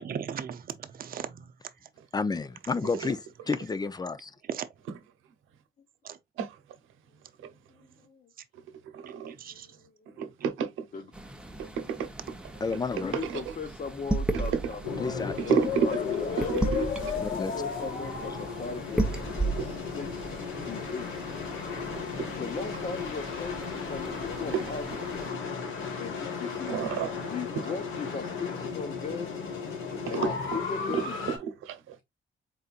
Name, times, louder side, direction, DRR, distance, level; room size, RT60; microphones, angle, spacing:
voice 1, 0.0-1.9 4.4-4.7 6.0-6.2 9.3-9.8 10.4-10.5, right 8 dB, 45° right, 0.7 m, -38 dB
voice 2, 2.1-4.3 12.6-13.2 15.0-15.6 17.2-17.5, left 4 dB, 20° left, 0.5 m, -31 dB
voice 3, 7.4-8.3 9.3-10.3 10.9-11.1 12.9-15.3 15.8-19.2 19.6-21.1 22.4-25.3 26.0-29.6 29.8-31.2, left 5 dB, 40° left, 1.0 m, -39 dB
voice 4, 8.9-9.3 10.2-10.8 11.8-12.1 13.2-13.4 15.5-15.9 16.4-16.9 19.6-19.7 22.0-22.1 24.5-24.6 26.7-27.1 30.1-30.3 30.9-31.4 31.6-32.0, right 7 dB, 90° right, 0.9 m, -29 dB
sound 1, 11.1-25.3, right 2 dB, 5° right, 0.8 m, -36 dB
sound 2, 14.8-31.4, left 5 dB, 85° left, 1.4 m, -35 dB
4.2 x 3.9 x 2.4 m
cardioid pair, 90°, 20 cm